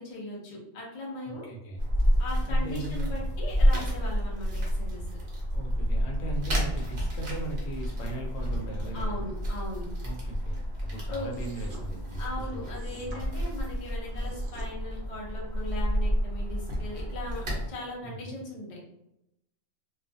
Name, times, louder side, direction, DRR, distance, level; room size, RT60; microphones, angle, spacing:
voice 1, 0.0-1.5 2.2-5.0 8.9-9.9 11.1-11.3 12.2-18.8, left 1 dB, 40° left, -3 dB, 0.5 m, -39 dB
voice 2, 1.3-1.8 2.5-3.1 5.5-9.3 10.0-12.6 13.0-13.2 18.0-18.3, right 2 dB, 75° left, 1 dB, 0.9 m, -39 dB
sound 1, 1.8-17.7, equal, 45° right, 0.8 m, -29 dB
sound 2, 11.3-11.9 12.7-13.2 14.1-14.7, right 2 dB, 75° right, 1.0 m, -49 dB
2.4 x 2.3 x 2.5 m, 0.85 s
omnidirectional pair, 1.4 m